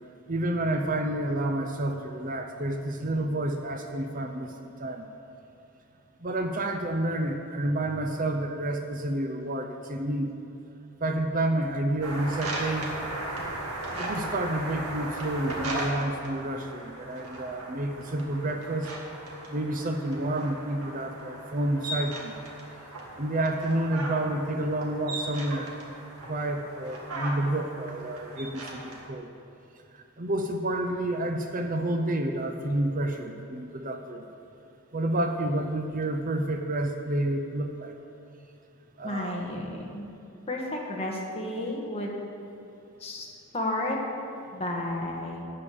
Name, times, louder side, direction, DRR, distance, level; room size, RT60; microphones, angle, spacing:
voice 1, 0.3-4.5 4.8-5.1 6.2-10.3 11.0-13.0 14.0-18.9 19.2-22.3 23.2-25.7 26.3-29.3 29.9-34.2 34.9-37.9 39.0-39.4, right 1 dB, 35° right, 5 dB, 0.6 m, -29 dB
sound 1, 12.0-29.0, right 1 dB, 85° right, 1.9 m, -37 dB
voice 2, 39.0-40.1 40.5-42.2 43.0-43.3 43.5-44.0 44.5-45.4, left 1 dB, 25° left, -1 dB, 1.4 m, -32 dB
12.0 x 5.3 x 8.4 m, 2.7 s
head